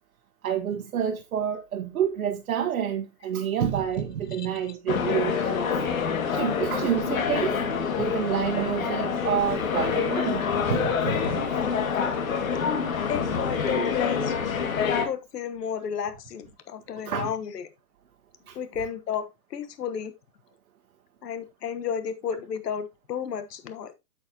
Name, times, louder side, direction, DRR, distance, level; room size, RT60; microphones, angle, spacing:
voice 1, 0.4-5.8 6.3-10.4 10.7-11.6 17.0-17.3 18.5-18.6, right 9 dB, 65° right, 1.3 m, -29 dB
sound 1, 4.9-15.1, left 6 dB, 55° left, 2.1 m, -26 dB
voice 2, 13.1-14.4 15.0-17.7 18.5-20.1 21.2-23.9, left 8 dB, 80° left, 1.3 m, -32 dB
8.3 x 7.5 x 2.9 m
hypercardioid pair, 175°, 47 cm